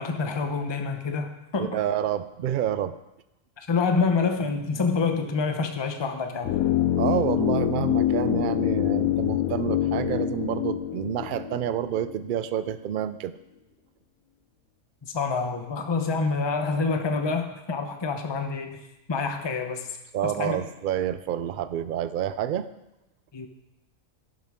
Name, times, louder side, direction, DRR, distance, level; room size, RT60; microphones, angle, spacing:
voice 1, 0.0-1.8 3.6-6.6 15.1-18.8 19.1-19.9 20.2-20.6 23.3-23.5, left 4 dB, 25° left, 6 dB, 0.7 m, -27 dB
voice 2, 1.6-2.9 7.0-13.3 20.1-22.7, right 10 dB, 70° right, 13 dB, 0.5 m, -28 dB
sound 1, 6.4-12.5 12.7-12.8, left 11 dB, 85° left, 1.1 m, -25 dB
11.0 x 11.0 x 3.6 m, 0.94 s
omnidirectional pair, 1.4 m